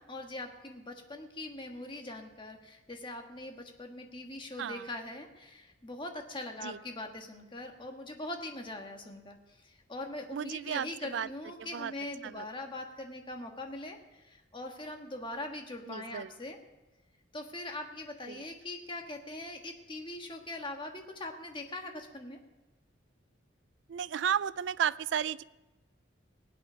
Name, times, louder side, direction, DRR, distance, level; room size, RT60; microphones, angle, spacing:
voice 1, 0.0-16.6 17.3-22.4, left 2 dB, 25° left, 3 dB, 1.4 m, -42 dB
voice 2, 10.3-11.3 11.6-11.9 12.2-12.4 15.9-16.3 18.3-18.4 23.9-25.4, right 8 dB, 65° right, 18 dB, 0.4 m, -33 dB
19.0 x 8.4 x 6.3 m, 1.1 s
head